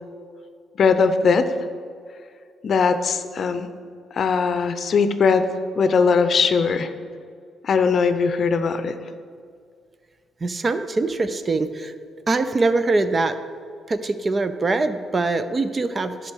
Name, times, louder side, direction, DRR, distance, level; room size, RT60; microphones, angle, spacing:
voice 1, 0.8-1.5 2.6-3.7 4.1-5.5 5.7-6.9 7.6-8.9, left 5 dB, 55° left, 10 dB, 0.6 m, -20 dB
voice 2, 10.4-11.9 12.3-13.4 13.9-16.3, right 3 dB, 30° right, 10 dB, 0.6 m, -23 dB
10.5 x 5.2 x 6.3 m, 2.2 s
cardioid pair, 90°, 0 cm